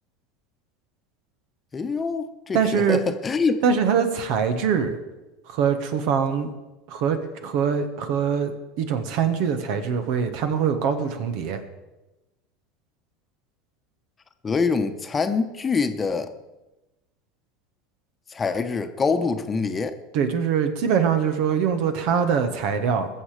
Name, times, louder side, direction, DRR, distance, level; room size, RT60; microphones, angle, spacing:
voice 1, 1.7-3.6 4.6-4.7 14.4-16.3 18.3-20.0, left 4 dB, 25° left, 8 dB, 1.1 m, -25 dB
voice 2, 2.5-3.0 3.6-5.0 5.5-6.5 6.9-11.6 20.1-23.1, right 7 dB, 60° right, 9 dB, 1.5 m, -23 dB
20.5 x 7.0 x 5.1 m, 1.0 s
hypercardioid pair, 80°, 0 cm